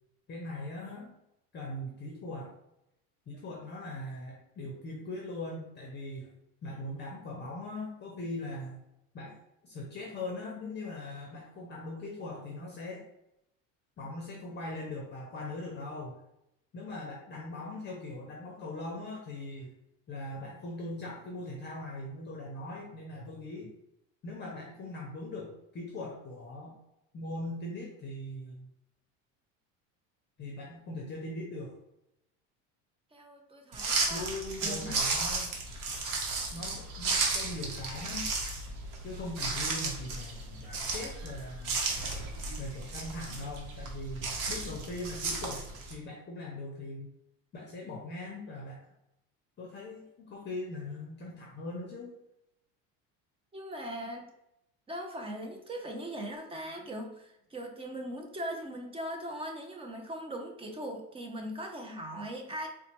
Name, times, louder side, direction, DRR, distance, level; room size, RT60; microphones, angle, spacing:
voice 1, 0.3-1.1 1.5-2.5 3.3-6.3 6.6-8.8 9.1-9.4 9.6-13.0 14.0-16.2 16.7-19.7 20.1-23.7 24.2-26.8 27.1-28.7 30.4-31.7 34.1-35.5 36.5-38.3 39.0-41.8 42.6-45.6 45.9-47.1 47.5-48.8 49.6-52.1, left 2 dB, 30° left, -1 dB, 0.6 m, -40 dB
voice 2, 33.1-34.3 34.6-34.9 53.5-54.3 54.9-62.7, right 1 dB, 15° right, 2 dB, 0.5 m, -40 dB
sound 1, 33.7-45.9, right 3 dB, 60° right, 0.9 m, -34 dB
4.0 x 2.1 x 2.9 m, 0.84 s
supercardioid pair, 120°, 36 cm